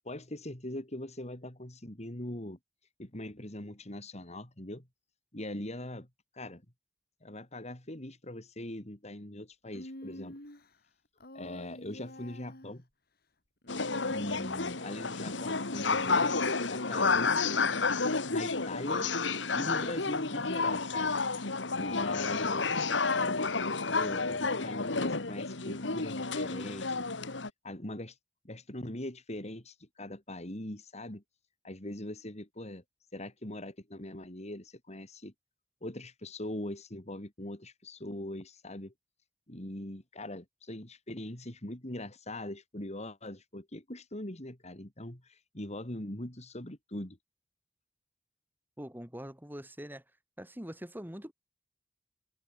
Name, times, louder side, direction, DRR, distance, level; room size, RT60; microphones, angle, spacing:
voice 1, 0.0-2.6 3.0-4.9 5.3-6.1 6.3-6.6 7.2-10.4 11.3-12.8 14.1-17.6 18.3-19.1 19.5-21.1 21.8-23.5 23.9-27.1 27.6-28.2 28.4-31.2 31.6-32.8 33.1-35.3 35.8-38.9 39.5-47.2, left 1 dB, 35° left, 3.7 m, -41 dB
Human voice, 9.7-10.7 11.2-12.8 13.6-14.9, left 1 dB, 55° left, 7.4 m, -47 dB
sound 1, 13.7-27.5, left 4 dB, 75° left, 2.0 m, -30 dB
voice 2, 48.8-50.0 50.4-51.3, equal, 10° right, 6.3 m, -43 dB
head